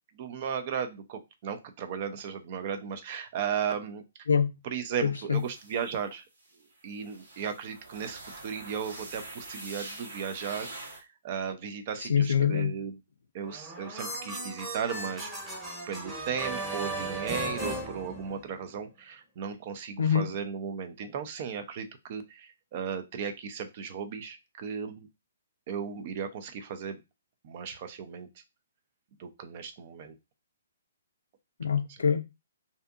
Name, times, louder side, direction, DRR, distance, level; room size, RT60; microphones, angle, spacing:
voice 1, 0.2-4.0 4.6-6.2 6.8-10.7 10.9-12.9 13.3-15.3 15.9-25.1 25.7-27.0 27.4-28.3 29.2-30.2, right 7 dB, 45° right, 0.5 m, -36 dB
voice 2, 5.0-5.4 12.0-12.7 20.0-20.3 31.6-32.2, left 7 dB, 75° left, 0.4 m, -25 dB
sound 1, 5.3-6.0 6.5-6.6 7.0-11.0, right 2 dB, 70° right, 1.0 m, -44 dB
sound 2, 13.4-18.7, right 1 dB, 10° right, 1.0 m, -36 dB
2.6 x 2.5 x 2.4 m
hypercardioid pair, 135°, 0 cm